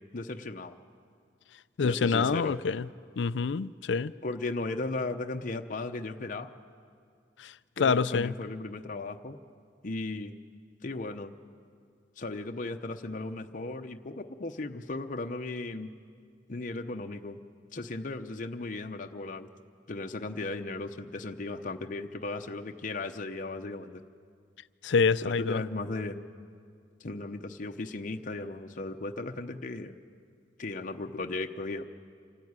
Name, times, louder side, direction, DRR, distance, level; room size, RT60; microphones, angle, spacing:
voice 1, 0.1-0.8 1.8-2.6 4.2-6.5 7.8-9.4 9.8-10.3 10.8-11.3 12.2-15.9 16.5-17.4 17.7-19.5 19.9-24.0 25.2-26.2 27.0-30.0 30.6-31.9, left 2 dB, 45° left, 0.8 m, -36 dB
voice 2, 1.8-2.9 3.2-4.1 7.4-7.5 7.8-8.3 24.8-25.6, left 5 dB, 70° left, 0.5 m, -26 dB
26.0 x 13.5 x 9.6 m
head